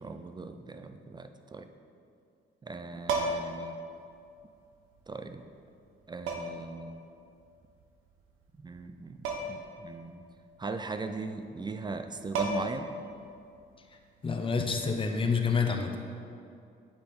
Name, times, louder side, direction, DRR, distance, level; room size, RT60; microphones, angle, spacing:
voice 1, 0.0-1.7 2.6-3.8 5.1-5.4 6.1-7.0 8.6-10.2 10.6-12.9, right 3 dB, 20° right, 8 dB, 0.4 m, -39 dB
sound 1, 3.0-3.6 5.0-5.1 6.3-6.7 9.2-9.7 10.0-10.1 11.9-12.0 12.3-12.9 14.9-15.1, right 2 dB, 85° right, 0.9 m, -32 dB
voice 2, 14.2-15.9, left 5 dB, 25° left, 4 dB, 0.8 m, -28 dB
8.6 x 5.6 x 4.3 m, 2.5 s
cardioid pair, 90°, 20 cm